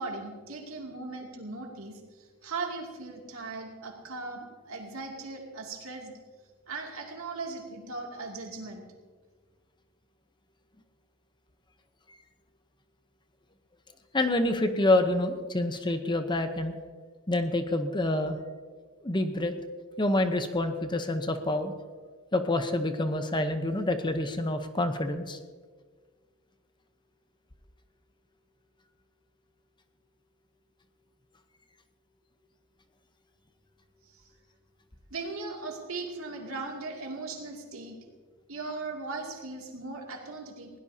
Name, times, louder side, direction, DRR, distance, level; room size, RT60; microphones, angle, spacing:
voice 1, 0.0-6.2 6.7-8.8 35.1-38.0 38.5-40.7, right 3 dB, 75° right, 0 dB, 2.6 m, -38 dB
voice 2, 14.1-16.7 17.3-18.4 19.0-19.5 20.0-21.7 22.3-25.4, left 1 dB, 20° left, 7 dB, 0.8 m, -27 dB
21.0 x 17.0 x 2.8 m, 1.5 s
head